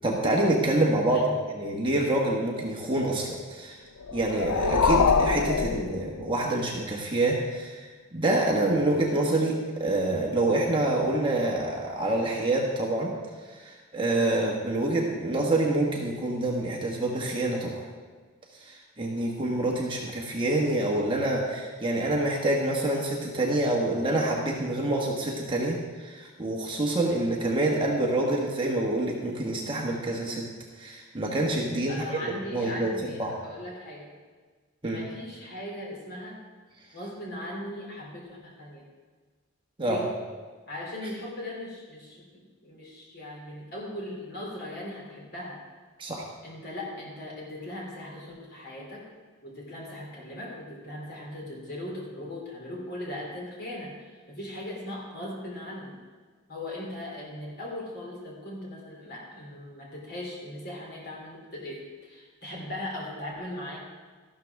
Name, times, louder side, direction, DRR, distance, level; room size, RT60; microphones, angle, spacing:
voice 1, 0.0-1.2 1.5-3.8 4.1-13.1 13.5-17.8 18.6-30.4 30.8-32.2 32.5-32.9 33.2-33.3 34.8-35.0 39.8-40.0 46.0-46.3, right 2 dB, 20° right, -2 dB, 1.4 m, -27 dB
voice 2, 1.1-1.4 31.9-34.1 34.8-36.4 36.9-38.9 39.8-40.1 40.7-45.6 46.4-49.0 49.4-56.0 56.5-63.8, left 1 dB, 45° left, -3 dB, 3.1 m, -39 dB
sound 1, 4.0-6.6, left 5 dB, 85° left, 0.5 m, -25 dB
13.0 x 12.0 x 3.5 m, 1.5 s
head